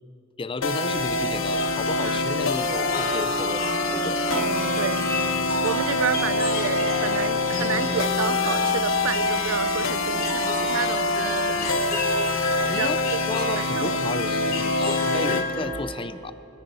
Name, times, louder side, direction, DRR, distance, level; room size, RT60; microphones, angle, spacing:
voice 1, 0.4-4.2 11.5-11.9 12.7-16.3, left 3 dB, 25° left, 0.5 m, -33 dB
sound 1, 0.6-15.5, left 2 dB, 75° left, 0.9 m, -25 dB
sound 2, 0.9-15.8, left 2 dB, 50° left, 2.5 m, -32 dB
sound 3, 3.7-13.6, equal, ahead, 3.7 m, -48 dB
voice 2, 4.3-5.1 5.6-11.9 12.8-12.9 13.6-13.9, right 8 dB, 80° right, 0.4 m, -30 dB
24.5 x 10.0 x 4.2 m
head